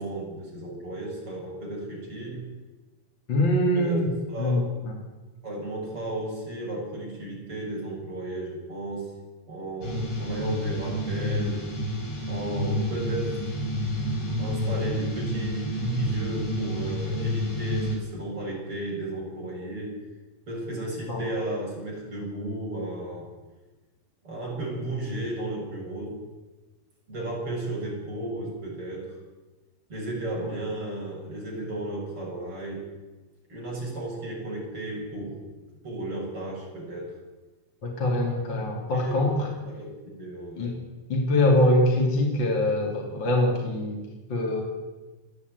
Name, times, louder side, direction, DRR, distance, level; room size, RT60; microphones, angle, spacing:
voice 1, 0.0-2.5 3.8-4.0 4.3-4.7 5.4-9.2 9.5-11.7 12.3-13.4 14.4-19.9 20.5-23.3 24.2-26.2 27.1-29.1 29.9-32.9 33.5-35.4 35.8-37.2 38.9-39.3 39.7-40.8, right 1 dB, 30° right, -2 dB, 7.7 m, -34 dB
voice 2, 3.3-4.0 4.4-4.9 21.1-21.3 30.4-30.5 37.8-39.5 40.6-40.8 41.1-44.6, left 1 dB, 30° left, 0 dB, 3.2 m, -24 dB
sound 1, 9.8-18.0, equal, 90° left, 7.9 m, -29 dB
28.5 x 9.9 x 9.7 m, 1.2 s
omnidirectional pair, 5.4 m